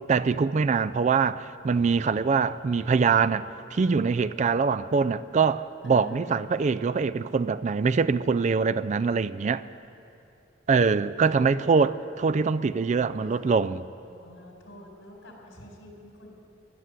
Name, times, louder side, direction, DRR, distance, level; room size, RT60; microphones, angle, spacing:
voice 1, 0.1-9.7 10.7-13.8, right 5 dB, 35° right, 0.3 m, -24 dB
voice 2, 5.8-6.5 11.3-11.6 12.9-13.5 14.0-16.3, left 1 dB, 85° left, 4.2 m, -47 dB
15.5 x 11.5 x 8.1 m
head